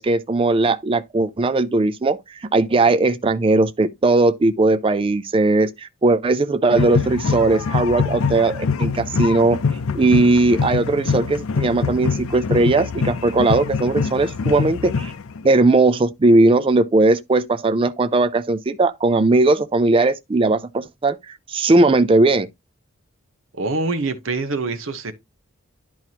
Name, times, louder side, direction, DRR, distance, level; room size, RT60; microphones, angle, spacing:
voice 1, 0.0-9.6 9.9-15.1 15.4-22.5, right 2 dB, 25° right, 0.4 m, -18 dB
sound 1, 6.7-15.5, left 5 dB, 85° left, 0.5 m, -24 dB
voice 2, 23.6-25.1, right 3 dB, 70° right, 0.9 m, -25 dB
10.5 x 4.6 x 2.9 m
head